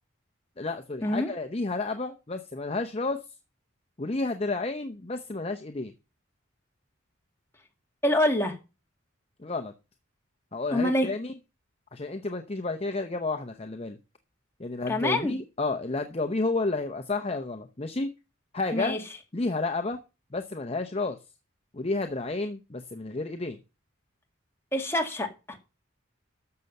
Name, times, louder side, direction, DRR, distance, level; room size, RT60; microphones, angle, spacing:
voice 1, 0.6-3.2 4.0-5.9 9.4-9.7 10.5-11.3 11.9-14.0 14.6-18.1 18.5-19.0 19.3-20.0 20.3-21.2 21.7-23.6, left 3 dB, 30° left, 0.7 m, -31 dB
voice 2, 8.0-8.6 10.7-11.1 14.9-15.4 18.7-19.0 24.7-25.6, left 1 dB, 10° left, 2.1 m, -26 dB
12.5 x 6.8 x 5.4 m
head